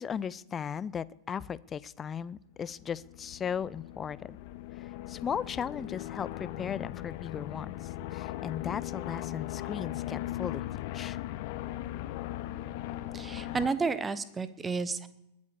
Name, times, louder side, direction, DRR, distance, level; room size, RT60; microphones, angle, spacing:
voice 1, 0.0-4.4 4.8-10.6 10.9-11.2, left 7 dB, 20° left, 20 dB, 0.5 m, -37 dB
sound 1, 2.7-13.7, left 14 dB, 50° left, 0.9 m, -38 dB
voice 2, 13.1-15.1, right 4 dB, 15° right, 15 dB, 1.1 m, -31 dB
21.0 x 9.6 x 6.9 m, 0.86 s
figure-of-eight pair, 90°, 0 cm